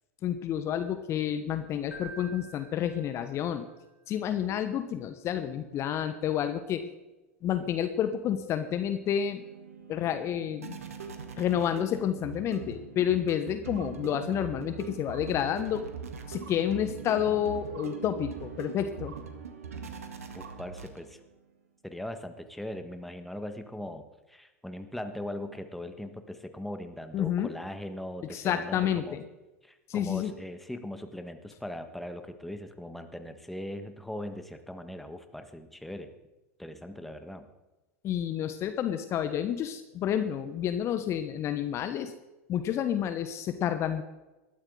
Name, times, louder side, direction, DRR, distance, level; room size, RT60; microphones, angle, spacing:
voice 1, 0.2-3.7 4.1-6.9 7.4-9.4 9.9-10.8 11.4-15.8 16.3-19.1 27.1-27.5 28.3-29.2 29.9-30.3 38.0-42.1 42.5-44.0, left 10 dB, 35° left, 10 dB, 1.1 m, -29 dB
Keyboard (musical), 1.9-3.7, right 2 dB, 75° left, 4.0 m, -48 dB
sound 1, 8.6-21.3, right 6 dB, 75° right, 1.9 m, -42 dB
voice 2, 20.3-21.2 21.8-29.2 29.6-36.1 36.6-37.5, left 1 dB, ahead, 7 dB, 1.5 m, -40 dB
20.0 x 14.0 x 3.9 m, 1.1 s
figure-of-eight pair, 85°, 8 cm